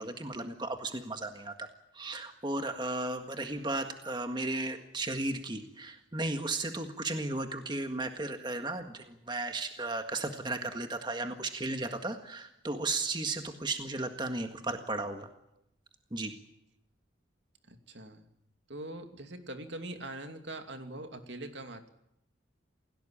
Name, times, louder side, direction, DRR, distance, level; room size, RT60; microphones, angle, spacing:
voice 1, 0.0-1.7 1.9-15.3 16.1-16.3, right 2 dB, 25° right, 5 dB, 1.7 m, -35 dB
voice 2, 4.7-5.2 5.7-5.8 8.3-8.5 9.0-9.1 14.8-14.9 15.5-15.6 17.6-18.3 18.7-21.9, right 1 dB, 65° right, 6 dB, 2.7 m, -44 dB
28.5 x 17.5 x 8.8 m, 0.81 s
head